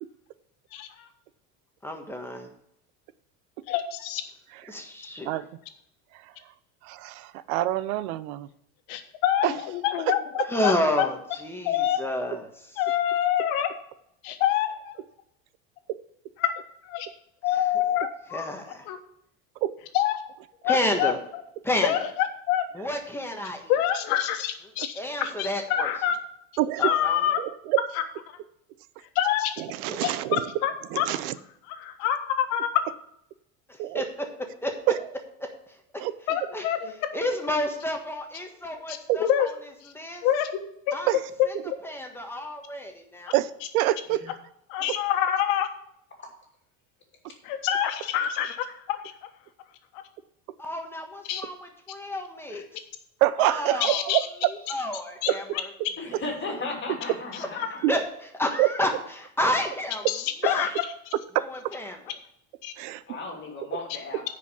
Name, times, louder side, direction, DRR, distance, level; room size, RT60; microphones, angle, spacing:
voice 1, 0.7-1.1 3.7-4.2 8.9-11.1 11.6-12.0 12.8-13.7 14.2-14.9 16.4-16.5 16.8-17.1 17.4-18.4 18.9-19.0 19.9-20.2 20.6-21.1 21.8-22.7 23.7-24.9 25.2-26.1 26.8-27.4 28.0-28.1 29.1-29.5 30.0-31.1 31.7-32.8 36.3-36.9 38.9-39.5 39.8-39.9 40.2-40.6 40.9-41.0 44.7-45.7 47.4-49.0 51.3-51.4 53.8-54.2 55.2-55.3 57.6-57.8 60.1-60.9 62.6-62.7, left 11 dB, 75° left, 7 dB, 1.5 m, -26 dB
voice 2, 1.8-2.5 4.7-5.3 10.5-12.8 17.5-17.6 18.3-18.9 20.6-21.2 21.6-21.9 22.7-23.7 24.9-25.9 26.8-27.2 29.9-30.0 33.7-34.0 34.6-34.7 35.7-35.8 36.5-36.7 37.1-39.5 39.9-40.3 40.9-41.1 41.4-41.5 41.8-43.3 50.6-52.6 53.4-54.2 54.5-55.7 56.1-56.6 57.6-58.0 58.4-58.9 59.2-60.1 60.4-60.7 61.4-62.0, left 1 dB, 5° left, 3 dB, 1.3 m, -30 dB
voice 3, 6.8-8.5 9.4-9.5 10.4-10.5 15.9-16.0 19.6-19.7 26.6-26.9 27.4-27.8 29.6-30.4 30.9-31.4 33.8-34.0 36.0-36.1 39.1-39.2 41.1-41.2 43.3-44.2 44.8-45.0 53.2-54.5 55.3-55.4 57.8-57.9 58.6-58.7 61.3-61.5 62.8-63.0, right 15 dB, 85° right, 16 dB, 0.8 m, -26 dB
voice 4, 56.0-57.8 63.1-64.3, left 3 dB, 25° left, 1 dB, 2.6 m, -35 dB
9.7 x 5.1 x 7.1 m, 0.75 s
supercardioid pair, 135°, 42 cm